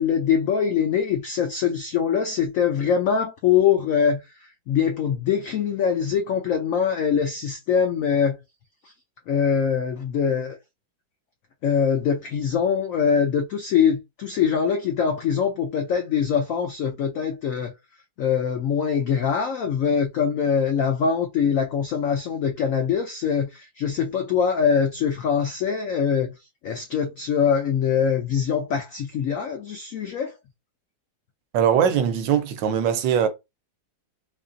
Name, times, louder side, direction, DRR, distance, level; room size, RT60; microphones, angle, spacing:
voice 1, 0.0-8.4 9.3-10.6 11.6-17.7 18.2-26.3 26.6-30.4, left 7 dB, 90° left, 0.7 m, -23 dB
voice 2, 31.5-33.3, right 8 dB, 75° right, 1.3 m, -21 dB
4.1 x 2.7 x 2.6 m
omnidirectional pair, 2.0 m